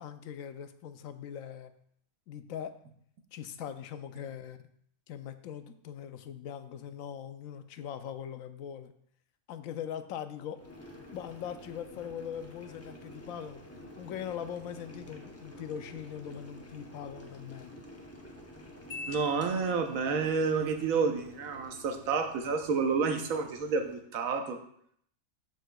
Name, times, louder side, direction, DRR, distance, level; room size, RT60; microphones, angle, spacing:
voice 1, 0.0-1.7 2.3-2.7 3.3-4.6 5.1-8.9 9.5-10.6 11.1-13.6 14.0-17.8, left 9 dB, 80° left, 10 dB, 1.0 m, -41 dB
Boiling, 10.5-24.0, left 1 dB, 15° left, 0.6 m, -50 dB
Marimba xylophone, 18.9-20.3, left 4 dB, 65° left, 1.7 m, -44 dB
voice 2, 19.1-24.6, right 5 dB, 90° right, 5 dB, 1.2 m, -29 dB
12.5 x 4.9 x 2.3 m, 0.68 s
omnidirectional pair, 1.4 m